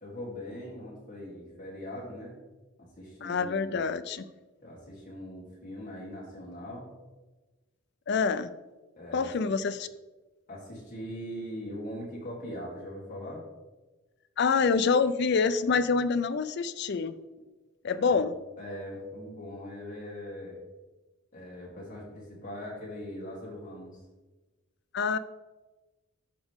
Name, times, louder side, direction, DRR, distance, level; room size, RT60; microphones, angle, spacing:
voice 1, 0.0-2.3 2.8-3.8 4.6-6.8 9.0-9.5 10.5-13.4 17.9-18.2 18.6-20.6 21.3-24.0, equal, 40° left, -5 dB, 3.1 m, -41 dB
voice 2, 3.2-4.2 8.1-8.5 9.1-9.9 14.4-17.2 17.8-18.4 24.9-25.2, left 5 dB, 55° left, 13 dB, 0.4 m, -26 dB
13.0 x 5.3 x 3.6 m, 1.2 s
head